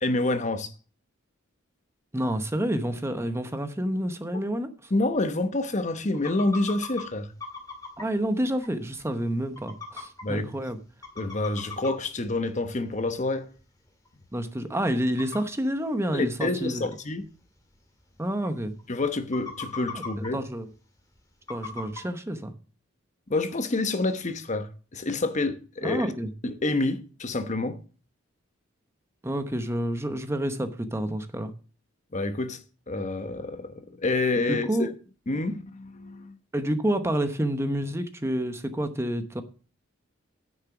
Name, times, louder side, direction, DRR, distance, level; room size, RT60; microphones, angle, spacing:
voice 1, 0.0-0.7 4.9-7.3 10.2-10.5 11.2-13.5 16.1-17.2 18.9-20.4 23.3-26.1 26.4-27.8 32.1-32.6 32.9-34.9 35.3-36.4, left 2 dB, 35° left, 0.9 m, -28 dB
voice 2, 2.1-4.9 8.0-10.8 14.3-16.9 18.2-18.7 19.9-20.0 20.3-20.7 21.5-22.5 25.8-26.3 29.2-31.5 34.4-34.9 36.5-39.4, right 1 dB, 15° right, 0.8 m, -29 dB
sound 1, 6.1-7.0 7.4-8.1 8.6-8.7 9.0-9.1 9.6-10.2 10.7-10.8 11.0-11.9 12.3-12.4 13.6-13.7 14.1-14.2 15.2-15.4 16.2-16.3 16.9-17.0 17.3-17.4 17.6-17.7 18.2-18.3 18.5-18.8 19.2-20.3 21.5-22.0, left 5 dB, 20° left, 2.0 m, -37 dB
9.9 x 6.8 x 5.9 m
head